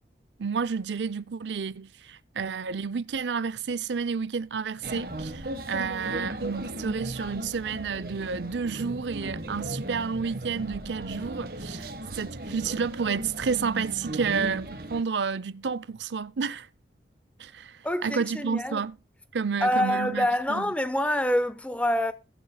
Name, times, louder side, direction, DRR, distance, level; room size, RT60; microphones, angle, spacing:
voice 1, 0.4-16.7 17.4-19.0 19.3-20.7, right 5 dB, 85° right, 0.5 m, -30 dB
sound 1, 4.8-15.0, right 1 dB, 55° right, 1.3 m, -36 dB
voice 2, 17.8-18.8 19.6-22.1, left 1 dB, 5° left, 0.7 m, -26 dB
21.5 x 7.6 x 2.2 m
head